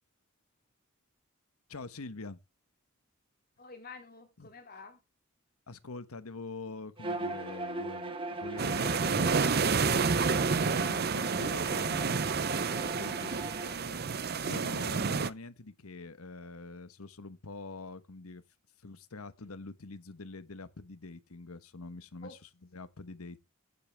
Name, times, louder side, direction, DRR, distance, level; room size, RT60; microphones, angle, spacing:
voice 1, 1.7-2.4 4.4-4.5 5.7-13.5 14.3-18.4 18.8-22.4 22.7-23.4, left 3 dB, 85° left, 1.2 m, -45 dB
voice 2, 3.6-5.0 12.8-13.1 13.4-14.0 22.2-22.4, left 3 dB, 45° left, 2.5 m, -50 dB
Bowed string instrument, 7.0-13.7, right 2 dB, 25° right, 1.6 m, -39 dB
sound 1, 8.6-15.3, right 5 dB, 45° right, 0.6 m, -29 dB
15.0 x 9.7 x 3.5 m
head